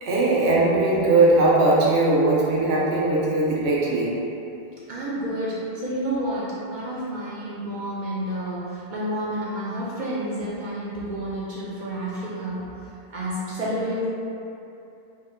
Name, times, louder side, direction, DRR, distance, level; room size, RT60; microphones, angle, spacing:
voice 1, 0.0-4.1, right 2 dB, 85° right, -5 dB, 0.9 m, -19 dB
voice 2, 4.9-12.6 13.1-14.1, right 1 dB, 60° right, -6 dB, 0.6 m, -30 dB
2.7 x 2.1 x 3.6 m, 2.8 s
omnidirectional pair, 1.1 m